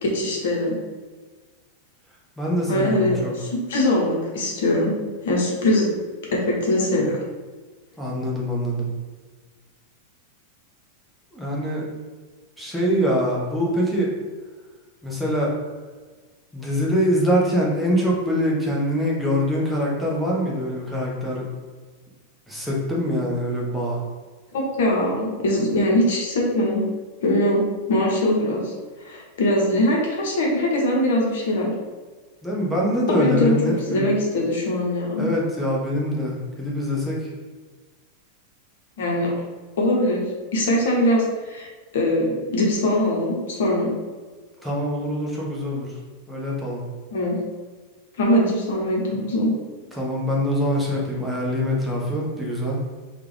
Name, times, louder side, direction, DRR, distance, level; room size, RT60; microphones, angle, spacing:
voice 1, 0.0-0.8 2.7-5.0 5.2-5.9 6.3-7.2 24.5-26.8 27.2-27.6 27.9-28.7 29.0-31.7 33.1-35.3 39.0-39.3 39.8-43.9 47.1-47.4 48.2-49.5, left 1 dB, 60° left, -2 dB, 0.9 m, -22 dB
voice 2, 2.4-3.3 8.0-8.9 11.3-11.8 12.6-14.1 15.0-15.5 16.5-21.4 22.5-24.0 32.4-34.1 35.2-37.3 44.6-45.9 46.3-46.8 50.0-52.8, equal, ahead, -5 dB, 1.0 m, -24 dB
3.4 x 2.4 x 3.5 m, 1.4 s
figure-of-eight pair, 90°, 0 cm